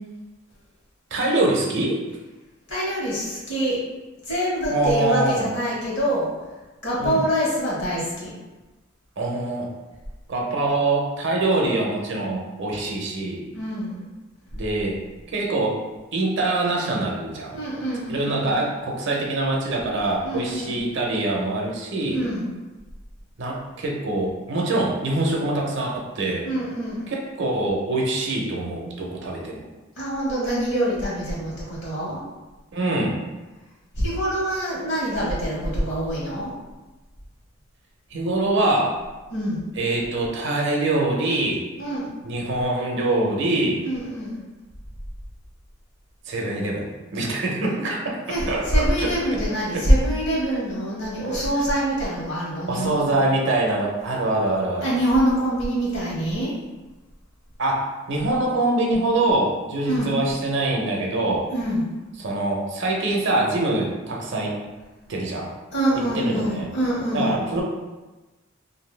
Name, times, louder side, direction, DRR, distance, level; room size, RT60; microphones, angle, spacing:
voice 1, 1.1-2.0 4.7-5.5 7.0-7.2 9.2-9.7 10.3-13.5 14.5-15.0 15.3-15.8 16.1-17.6 18.1-22.2 23.4-26.5 27.1-29.6 32.7-33.2 38.1-39.0 39.8-41.6 42.2-43.8 46.3-48.2 48.5-49.1 49.7-49.9 52.7-54.9 57.6-61.5 62.2-64.5 65.1-65.5 66.2-66.7 67.1-67.6, right 2 dB, 60° right, -1 dB, 0.6 m, -24 dB
voice 2, 2.7-3.8 4.2-6.3 6.8-8.3 13.5-14.0 17.5-18.6 20.2-20.8 22.0-22.5 26.4-27.0 30.0-32.2 33.9-36.5 39.3-39.7 41.8-42.1 43.8-44.5 48.3-53.1 54.8-56.5 59.8-60.1 61.5-61.8 65.7-67.4, equal, 60° left, -6 dB, 1.2 m, -25 dB
2.6 x 2.6 x 3.2 m, 1.2 s
head